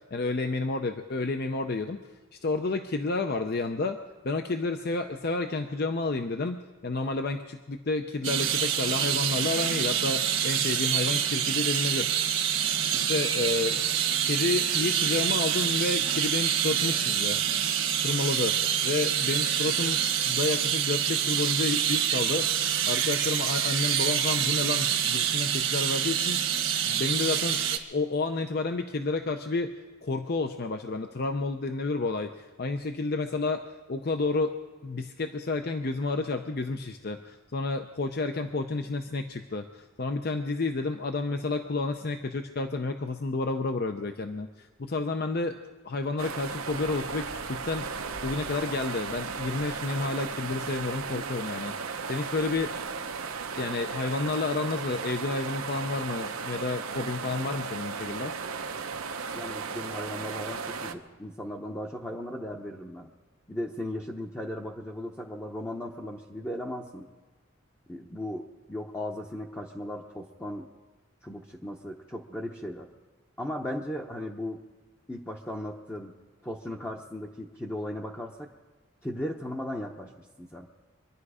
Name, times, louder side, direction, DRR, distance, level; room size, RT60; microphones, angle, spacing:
voice 1, 0.1-2.0 2.3-4.0 4.2-12.1 12.9-13.8 14.2-17.4 18.0-18.6 18.8-20.0 20.3-22.5 22.8-29.7 30.0-34.6 34.8-45.6 45.8-52.7 53.6-58.3, left 3 dB, 50° left, 7 dB, 0.6 m, -30 dB
sound 1, 8.2-27.8, right 9 dB, 65° right, 1.3 m, -26 dB
sound 2, 46.2-60.9, right 5 dB, 90° right, 0.9 m, -35 dB
voice 2, 59.3-63.1 63.5-67.1 67.9-70.7 71.2-72.9 73.4-74.6 75.1-76.1 76.4-78.5 79.0-80.1 80.4-80.7, left 1 dB, 10° left, -1 dB, 0.8 m, -37 dB
24.5 x 10.5 x 4.9 m, 1.3 s
head